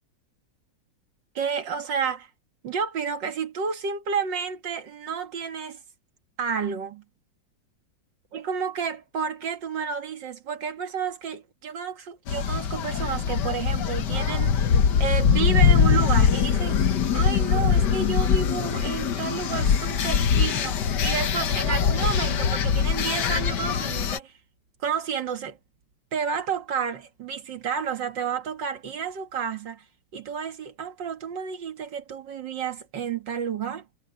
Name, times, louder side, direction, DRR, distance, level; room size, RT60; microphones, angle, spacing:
voice 1, 1.4-2.3 2.6-5.8 6.4-7.0 8.3-14.7 15.0-24.3 24.8-25.6 26.1-29.8 30.1-33.9, right 6 dB, 80° right, 2.3 m, -31 dB
sound 1, 12.3-24.2, left 7 dB, 70° left, 1.7 m, -22 dB
omnidirectional pair, 1.9 m